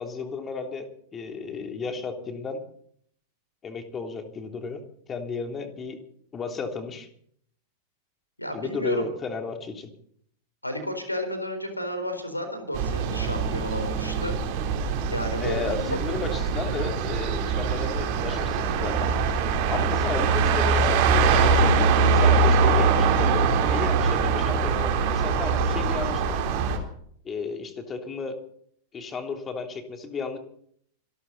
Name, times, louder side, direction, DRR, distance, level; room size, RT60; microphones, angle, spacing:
voice 1, 0.0-2.6 3.6-4.8 5.1-6.0 6.3-7.1 8.5-9.9 15.4-19.1 19.7-26.4 27.2-28.4 28.9-30.4, left 5 dB, 25° left, 5 dB, 3.2 m, -33 dB
voice 2, 8.4-9.1 10.6-14.4 15.1-16.0 24.1-24.2, equal, 85° left, 7 dB, 4.2 m, -32 dB
sound 1, 12.7-26.8, right 5 dB, 45° right, 3.6 m, -23 dB
26.0 x 13.0 x 4.1 m, 0.63 s
figure-of-eight pair, 90°, 0 cm